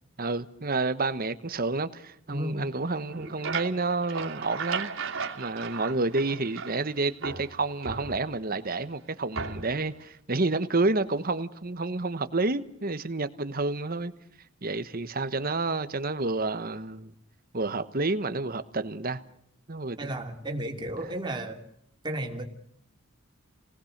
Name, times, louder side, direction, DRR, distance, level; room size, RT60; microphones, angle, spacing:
voice 1, 0.2-4.9 5.4-14.1 14.6-17.1 17.5-19.2 19.7-20.1 21.0-21.1, right 3 dB, 40° right, 1.2 m, -29 dB
voice 2, 2.3-2.6 3.2-3.3 20.0-21.6 22.0-22.5, right 1 dB, 20° right, 3.1 m, -33 dB
sound 1, 3.0-6.9 7.2-8.6 9.3-9.9, right 5 dB, 65° right, 2.8 m, -36 dB
29.0 x 19.5 x 6.6 m
head